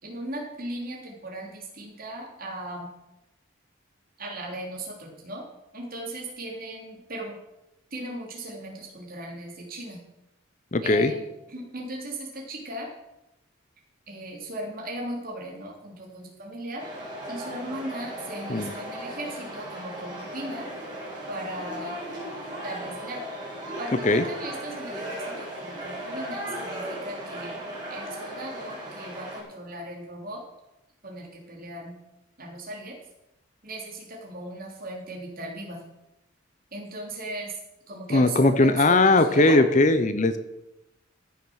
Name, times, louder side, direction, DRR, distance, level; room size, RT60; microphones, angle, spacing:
voice 1, 0.0-2.9 4.2-5.4 5.7-7.4 7.9-10.0 10.8-12.9 14.1-16.8 17.3-20.7 21.3-22.0 22.6-23.3 23.8-27.6 27.9-30.4 31.0-32.0 32.4-32.9 33.6-35.8 36.7-37.6 37.9-39.6, right 1 dB, 45° right, -2 dB, 3.4 m, -37 dB
voice 2, 10.7-11.1 18.5-18.7 24.0-24.2 38.1-40.4, left 2 dB, 35° left, 11 dB, 0.7 m, -19 dB
sound 1, 16.8-29.4, right 1 dB, 20° right, 4.6 m, -37 dB
14.0 x 7.3 x 6.4 m, 0.93 s
head